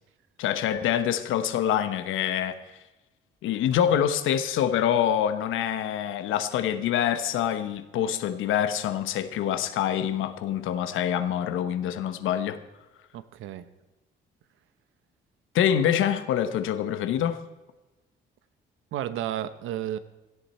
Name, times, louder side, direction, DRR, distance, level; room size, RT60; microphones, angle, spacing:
voice 1, 0.4-2.6 3.4-12.6 15.5-17.4, left 10 dB, 85° left, 1.1 m, -25 dB
voice 2, 13.1-13.6 18.9-20.0, right 11 dB, 85° right, 0.9 m, -32 dB
17.0 x 13.0 x 4.3 m
cardioid pair, 90°, 20 cm